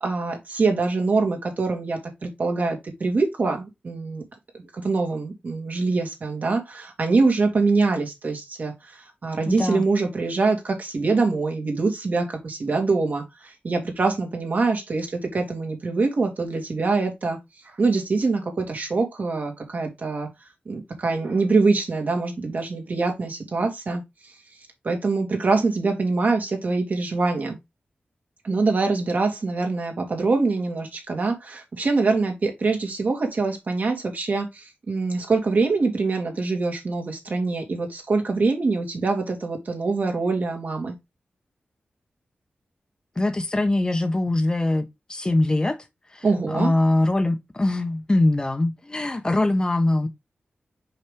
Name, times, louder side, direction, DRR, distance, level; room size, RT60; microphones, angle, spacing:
voice 1, 0.0-4.2 4.5-17.4 17.8-20.3 20.7-24.0 24.8-27.6 28.4-41.0 46.2-46.7, right 3 dB, 55° right, 2.2 m, -24 dB
voice 2, 9.5-9.8 43.2-45.8 46.1-50.1, left 2 dB, 25° left, 0.9 m, -22 dB
5.6 x 5.1 x 3.4 m
wide cardioid pair, 105°, 3 cm